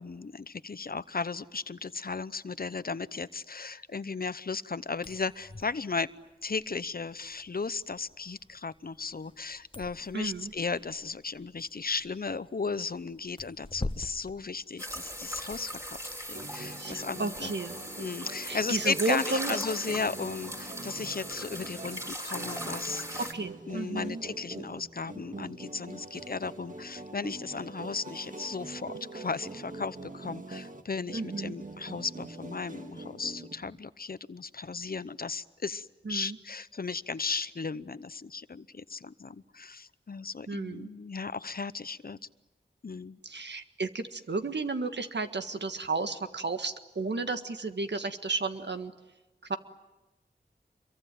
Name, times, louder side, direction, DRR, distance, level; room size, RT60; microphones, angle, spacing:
voice 1, 0.0-6.1 6.4-17.5 18.0-23.3 23.7-42.2 42.8-43.2, left 4 dB, 55° left, 16 dB, 0.8 m, -35 dB
sound 1, 4.9-15.4, left 2 dB, 25° left, 1.1 m, -45 dB
voice 2, 10.1-10.5 16.8-17.8 18.5-19.6 23.3-24.2 31.1-31.6 36.1-36.4 40.5-40.9 43.2-48.9 49.5-49.6, right 3 dB, 70° right, 8 dB, 1.7 m, -33 dB
sound 2, 14.8-23.3, equal, 15° right, 4.8 m, -39 dB
sound 3, 16.3-33.8, right 2 dB, 45° right, 2.0 m, -44 dB
26.0 x 23.5 x 9.2 m, 1.1 s
wide cardioid pair, 50°, 19 cm